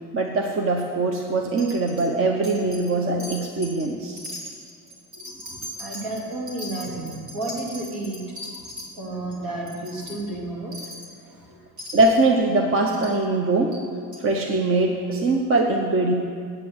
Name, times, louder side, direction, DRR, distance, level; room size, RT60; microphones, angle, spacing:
voice 1, 0.1-4.2 11.9-13.7 14.2-16.1, right 2 dB, 35° right, 2 dB, 0.8 m, -22 dB
Wind chime, 1.6-2.1 2.4-2.9 3.2-3.8 4.2-8.9 9.3-9.4 9.7-10.2 10.7-11.1 11.8-12.2 12.9-13.1 13.7-13.8 14.1-14.2, left 1 dB, 55° right, 2.6 m, -38 dB
voice 2, 5.2-8.2 9.0-10.7 11.3-11.6, right 2 dB, 75° right, -3 dB, 3.1 m, -32 dB
8.9 x 7.5 x 7.7 m, 2.1 s
cardioid pair, 150°, 35 cm